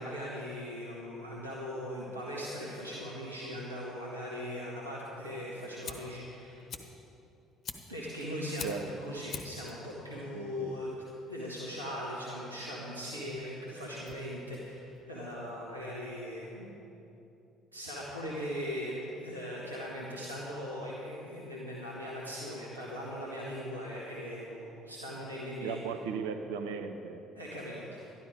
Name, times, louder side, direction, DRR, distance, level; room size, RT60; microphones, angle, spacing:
voice 1, 0.0-6.7 7.9-8.7 9.0-10.9 11.3-16.7 17.7-25.8 27.3-28.1, equal, 85° right, -6 dB, 1.5 m, -39 dB
Fire, 5.7-15.9, left 5 dB, 40° left, 1.1 m, -48 dB
voice 2, 10.3-10.7 25.6-27.2, right 6 dB, 65° right, 7 dB, 0.7 m, -37 dB
12.0 x 12.0 x 5.1 m, 2.9 s
figure-of-eight pair, 50°, 0 cm